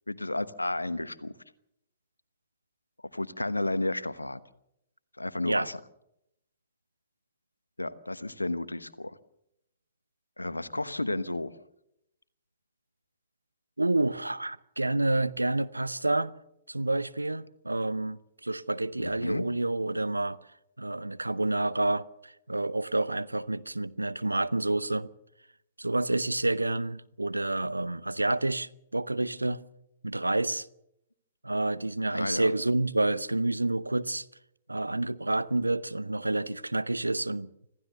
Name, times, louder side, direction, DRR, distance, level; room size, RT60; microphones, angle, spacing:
voice 1, 0.1-1.3 3.1-4.4 5.2-5.8 7.8-9.1 10.4-11.6 19.0-19.5 32.1-32.5, left 2 dB, 85° left, 1.1 m, -32 dB
voice 2, 13.8-16.3 16.7-20.4 20.8-25.1 25.8-29.6 30.0-30.7 31.4-34.2 34.7-37.5, right 2 dB, 80° right, 0.8 m, -29 dB
26.0 x 15.0 x 6.9 m
figure-of-eight pair, 115°, 0 cm